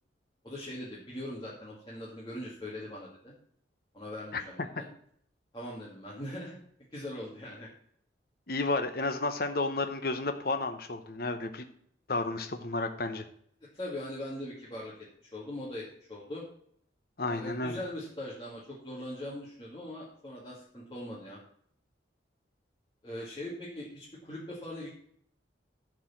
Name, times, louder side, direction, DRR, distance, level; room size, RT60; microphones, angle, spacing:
voice 1, 0.4-3.3 3.9-4.9 5.5-6.6 6.9-7.7 13.7-14.9 15.2-16.4 17.2-21.4 23.0-24.9, left 1 dB, 25° left, -7 dB, 2.2 m, -41 dB
voice 2, 8.5-11.6 12.1-13.2 17.2-17.8, left 2 dB, 55° left, 8 dB, 0.8 m, -32 dB
11.5 x 4.8 x 7.2 m, 0.65 s
head